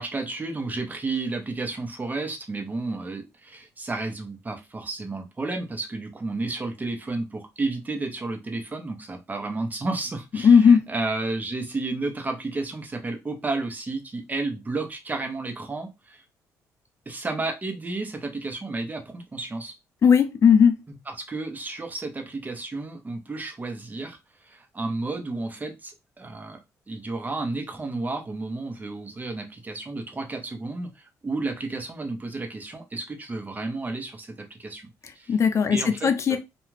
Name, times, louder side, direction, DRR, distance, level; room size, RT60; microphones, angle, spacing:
voice 1, 0.0-16.2 17.1-19.7 20.9-21.0 21.3-24.2 24.4-26.6 26.9-34.8 35.1-35.3 35.7-36.4, right 3 dB, 25° right, 0.9 m, -32 dB
voice 2, 10.4-10.8 20.0-20.8 35.3-36.4, left 6 dB, 45° left, 0.6 m, -17 dB
2.4 x 2.3 x 3.1 m
cardioid pair, 75°, 7 cm